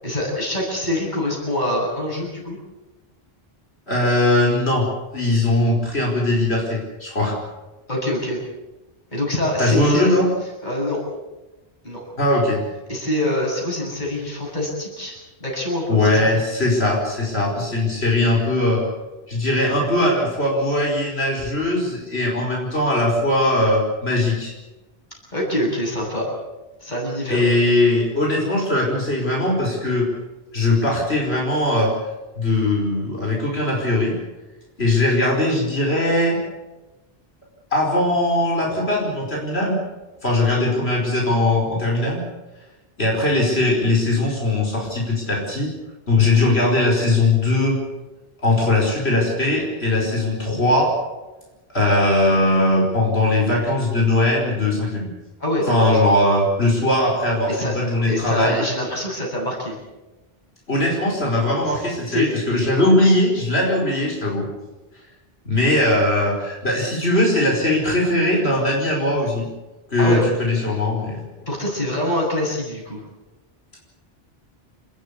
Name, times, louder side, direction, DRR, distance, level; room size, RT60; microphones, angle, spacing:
voice 1, 0.0-2.6 7.9-8.4 9.1-10.1 10.6-11.0 11.8-12.0 12.9-16.3 25.3-26.3 26.8-27.4 55.4-55.9 57.5-57.7 58.1-59.8 61.7-61.8 62.1-62.3 70.0-70.3 71.5-73.0, left 1 dB, 45° left, -1 dB, 7.8 m, -25 dB
voice 2, 3.9-4.9 5.1-7.4 9.6-10.3 12.2-12.6 15.9-18.9 19.3-24.5 27.3-30.1 30.5-31.9 32.4-34.2 34.8-36.4 37.7-39.8 40.2-42.2 43.0-45.7 46.1-47.8 48.4-50.9 51.7-55.1 55.7-58.6 60.7-64.5 65.5-69.5 69.9-71.2, left 1 dB, 90° left, -1 dB, 5.4 m, -20 dB
29.5 x 14.0 x 8.4 m, 1.1 s
omnidirectional pair, 1.0 m